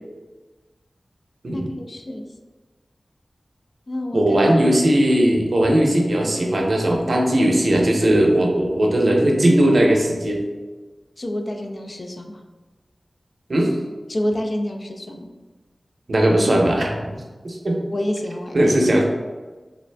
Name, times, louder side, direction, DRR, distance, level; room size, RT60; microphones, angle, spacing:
voice 1, 1.5-2.3 3.9-4.4 11.2-12.4 14.1-15.3 17.9-18.8, left 1 dB, 50° left, 3 dB, 0.4 m, -28 dB
voice 2, 4.1-10.4 13.5-13.7 16.1-17.1 17.4-17.8 18.5-19.0, right 1 dB, 65° right, 0 dB, 0.6 m, -18 dB
3.3 x 2.5 x 3.3 m, 1.3 s
wide cardioid pair, 70°, 0 cm